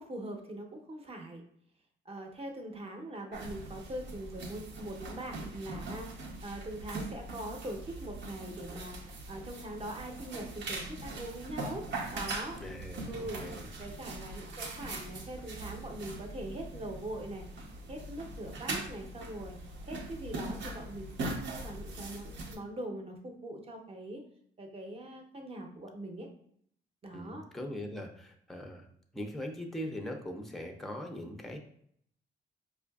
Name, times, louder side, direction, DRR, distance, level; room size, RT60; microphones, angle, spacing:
voice 1, 0.0-1.4 2.1-11.8 12.1-12.6 13.1-13.4 13.8-17.5 17.9-19.6 19.9-24.2 24.6-26.3 27.0-27.4, right 1 dB, 30° right, 3 dB, 0.7 m, -42 dB
sound 1, 3.3-22.5, right 2 dB, 65° right, 0.7 m, -41 dB
voice 2, 12.6-13.7 27.1-28.9 29.1-31.6, left 1 dB, ahead, 4 dB, 0.5 m, -41 dB
4.5 x 2.4 x 2.3 m, 0.66 s
cardioid pair, 90°, 20 cm